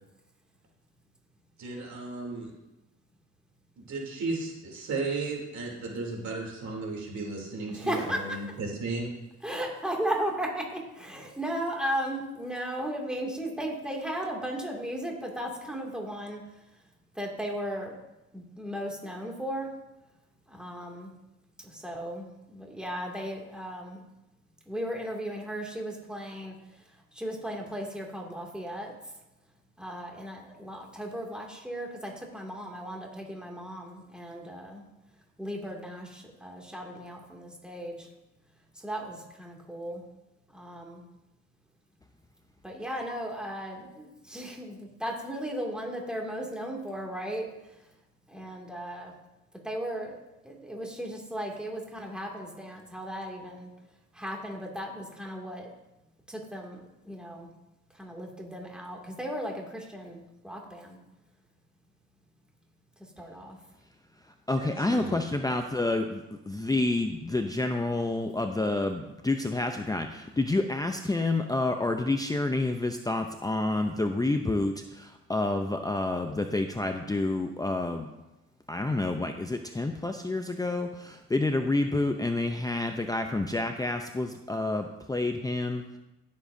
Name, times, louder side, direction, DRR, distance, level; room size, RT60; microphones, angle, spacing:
voice 1, 1.6-2.5 3.8-9.1 64.5-65.2, right 3 dB, 65° right, -1 dB, 3.2 m, -34 dB
voice 2, 7.7-8.4 9.4-16.4 17.2-17.9 18.3-19.7 20.5-21.1 21.8-24.0 24.7-26.5 27.2-28.9 29.8-34.8 35.4-38.0 38.8-40.0 40.5-41.0 42.6-47.5 48.3-49.1 49.6-50.2 50.5-53.7 54.2-55.7 56.3-56.8 57.1-57.5 58.0-61.0 63.2-63.6, equal, 5° right, -1 dB, 2.4 m, -36 dB
voice 3, 64.5-66.2 66.5-78.1 78.7-85.8, left 2 dB, 10° left, 5 dB, 0.6 m, -29 dB
17.0 x 7.4 x 2.7 m, 0.96 s
cardioid pair, 90°, 30 cm